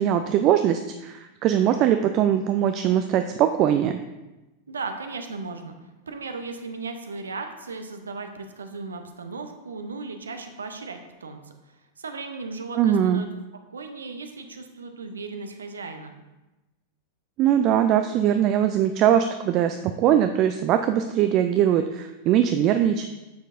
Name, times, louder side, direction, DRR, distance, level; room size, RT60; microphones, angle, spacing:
voice 1, 0.0-4.0 12.8-13.2 17.4-23.1, right 10 dB, 40° right, 8 dB, 0.3 m, -21 dB
voice 2, 4.7-5.8 6.1-11.4 12.0-13.3 13.7-16.1, right 4 dB, 70° right, 6 dB, 0.6 m, -36 dB
9.3 x 6.4 x 2.5 m, 1.1 s
figure-of-eight pair, 90°, 0 cm